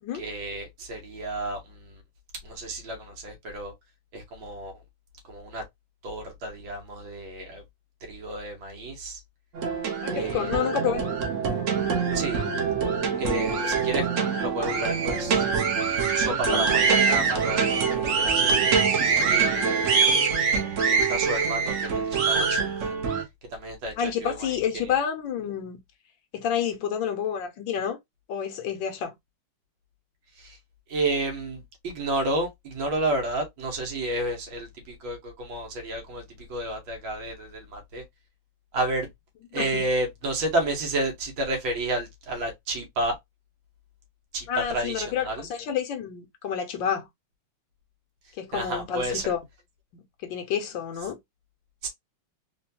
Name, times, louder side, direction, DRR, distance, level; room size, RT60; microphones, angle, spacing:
voice 1, 0.1-2.0 2.4-3.7 4.1-4.7 5.3-5.6 6.0-7.6 8.0-9.2 10.1-10.5 10.9-11.0 12.1-12.5 13.2-14.1 14.4-15.4 16.1-18.5 19.2-19.8 20.9-22.7 23.5-24.9 30.4-30.6 30.9-38.0 38.7-39.1 39.5-43.2 44.3-45.5 48.5-49.3 51.8-51.9, right 2 dB, 80° right, 2.0 m, -31 dB
sound 1, 9.5-23.2, right 5 dB, 55° right, 1.0 m, -24 dB
voice 2, 10.0-11.0 16.2-16.7 19.6-19.8 24.0-25.8 26.3-28.0 28.3-29.1 39.6-39.7 44.5-47.1 48.4-49.4 49.9-51.2, left 8 dB, 75° left, 1.5 m, -29 dB
4.3 x 2.3 x 2.7 m
omnidirectional pair, 2.1 m